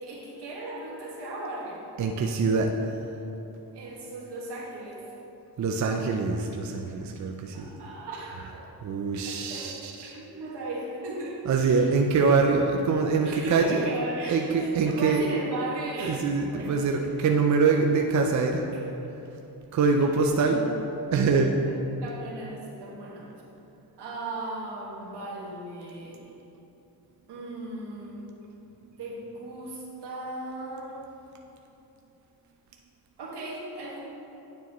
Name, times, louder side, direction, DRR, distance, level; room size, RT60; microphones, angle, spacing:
voice 1, 0.0-1.8 3.7-5.0 7.5-8.6 9.2-9.7 10.0-11.8 13.2-16.7 18.7-18.8 20.4-20.9 22.0-23.3 24.0-26.2 27.3-28.3 29.0-31.0 33.2-34.0, right 2 dB, 80° right, -4 dB, 1.7 m, -37 dB
voice 2, 2.0-2.7 5.6-7.7 8.3-10.1 11.4-13.9 14.2-15.3 16.0-18.7 19.7-20.6 21.1-21.6, right 4 dB, 45° right, 2 dB, 0.5 m, -24 dB
9.3 x 6.8 x 3.0 m, 3.0 s
cardioid pair, 105°, 40 cm